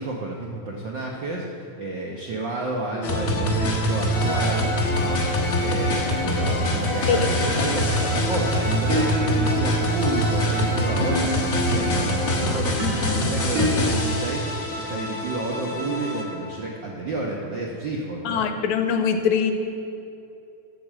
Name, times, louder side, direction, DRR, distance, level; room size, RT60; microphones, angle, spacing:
voice 1, 0.0-14.4 14.7-18.5, right 2 dB, 70° right, -1 dB, 1.1 m, -30 dB
sound 1, 3.0-16.5, equal, 45° left, 1.1 m, -24 dB
Bowed string instrument, 4.1-12.4, equal, 20° left, 1.8 m, -34 dB
sound 2, 8.6-13.7, left 1 dB, 40° right, 3.7 m, -30 dB
voice 2, 18.3-19.5, left 7 dB, 80° left, 7 dB, 2.0 m, -22 dB
13.5 x 6.8 x 7.4 m, 2.7 s
omnidirectional pair, 3.4 m